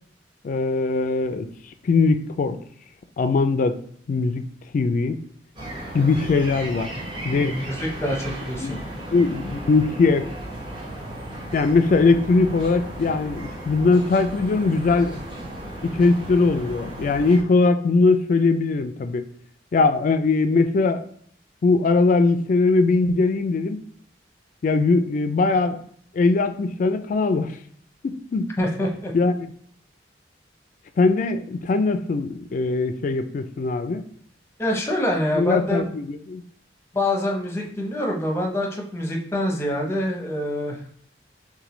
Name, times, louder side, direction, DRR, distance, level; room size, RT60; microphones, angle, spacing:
voice 1, 0.4-1.5 1.8-2.6 3.2-3.8 4.1-4.4 4.7-5.2 5.9-6.9 7.2-7.6 8.6-8.8 9.1-10.3 11.5-15.2 15.8-19.3 19.7-21.0 21.6-23.8 24.6-25.8 26.1-27.6 28.0-28.5 29.1-29.4 31.0-34.0 35.3-36.4, left 3 dB, 45° left, 10 dB, 0.3 m, -20 dB
sound 1, 5.6-17.4, right 1 dB, 30° right, 0.8 m, -35 dB
voice 2, 7.3-8.8 28.6-29.1 34.6-35.8 36.9-40.8, left 1 dB, 15° left, 0 dB, 0.7 m, -25 dB
5.8 x 2.2 x 3.1 m, 0.62 s
head